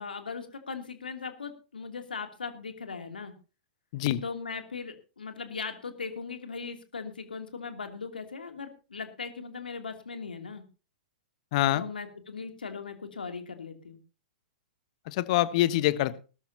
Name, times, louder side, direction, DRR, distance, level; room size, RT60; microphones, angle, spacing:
voice 1, 0.0-3.3 4.2-10.6 11.7-14.0, left 5 dB, 80° left, 6 dB, 2.9 m, -39 dB
voice 2, 11.5-11.8 15.1-16.2, left 14 dB, 45° left, 15 dB, 1.2 m, -25 dB
20.0 x 13.0 x 2.8 m, 0.34 s
figure-of-eight pair, 110°, 5 cm